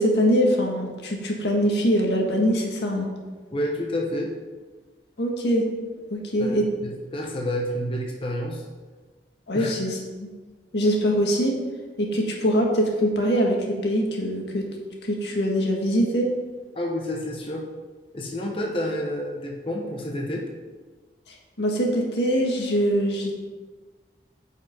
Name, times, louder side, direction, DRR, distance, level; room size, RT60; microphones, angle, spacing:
voice 1, 0.0-3.1 5.2-5.6 6.1-6.6 9.5-10.3 10.7-11.5 12.0-13.6 13.8-14.6 15.0-16.3 21.6-23.3, equal, 80° left, 0 dB, 1.8 m, -23 dB
voice 2, 3.5-4.3 6.4-8.7 9.5-9.7 16.7-17.7 18.1-20.5, left 1 dB, 30° left, -1 dB, 1.0 m, -29 dB
9.7 x 5.6 x 5.4 m, 1.3 s
head